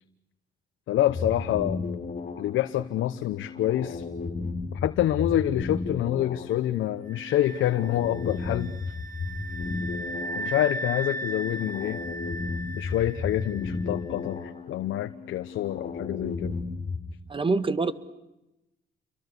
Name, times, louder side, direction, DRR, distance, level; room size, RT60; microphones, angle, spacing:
voice 1, 0.9-1.9 2.4-4.0 4.7-8.7 10.3-12.0 12.7-16.6, left 12 dB, 80° left, 10 dB, 0.9 m, -27 dB
sound 1, 1.1-17.1, left 4 dB, 40° left, 4.5 m, -35 dB
sound 2, 7.1-13.9, right 1 dB, 45° right, 1.8 m, -37 dB
voice 2, 17.3-17.9, right 3 dB, 25° right, 13 dB, 1.6 m, -25 dB
28.5 x 23.5 x 8.2 m, 0.94 s
cardioid pair, 90°, 20 cm